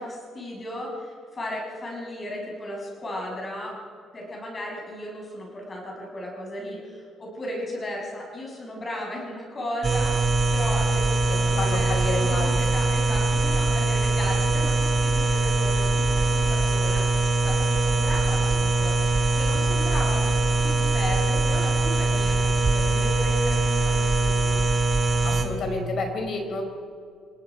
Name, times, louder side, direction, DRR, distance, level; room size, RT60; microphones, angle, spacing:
voice 1, 0.0-3.7 4.1-18.9 19.3-24.6, left 1 dB, 25° left, -1 dB, 6.4 m, -35 dB
sound 1, 9.8-25.4, right 2 dB, 25° right, 2.2 m, -22 dB
voice 2, 11.3-12.5 13.4-13.6 25.2-26.6, left 2 dB, 45° left, 4 dB, 4.5 m, -30 dB
28.5 x 18.5 x 5.2 m, 2.2 s
cardioid pair, 155°, 0 cm